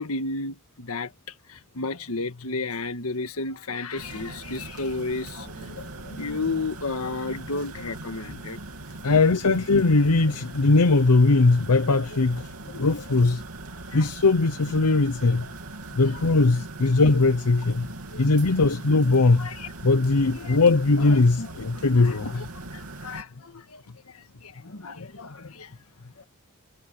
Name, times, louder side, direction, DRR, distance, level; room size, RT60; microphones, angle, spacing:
voice 1, 0.0-8.6 12.0-12.1 13.9-14.1 16.0-16.2 18.1-18.2 19.4-19.7 20.4-20.6 21.0-21.5 21.9-22.5 22.7-23.8 24.1-25.7 26.0-26.3, left 3 dB, 70° left, 1.7 m, -33 dB
sound 1, 4.0-23.2, right 2 dB, 75° right, 3.1 m, -40 dB
voice 2, 9.0-13.4 13.9-15.5 15.9-17.9 18.2-19.5 19.8-22.4, left 3 dB, 90° left, 0.9 m, -20 dB
head